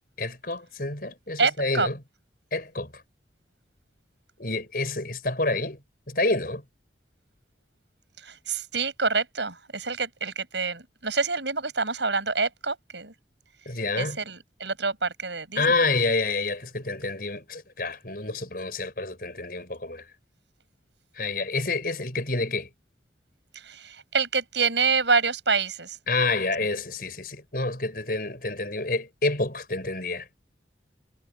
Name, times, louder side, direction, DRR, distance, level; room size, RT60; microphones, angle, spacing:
voice 1, 0.2-2.0 2.5-2.9 4.4-5.8 6.1-6.6 13.7-14.2 15.6-20.0 21.2-22.7 26.1-30.3, left 3 dB, 50° left, 6.2 m, -28 dB
voice 2, 1.4-1.9 8.2-13.1 14.0-15.8 23.5-26.0, right 4 dB, 75° right, 7.2 m, -27 dB
head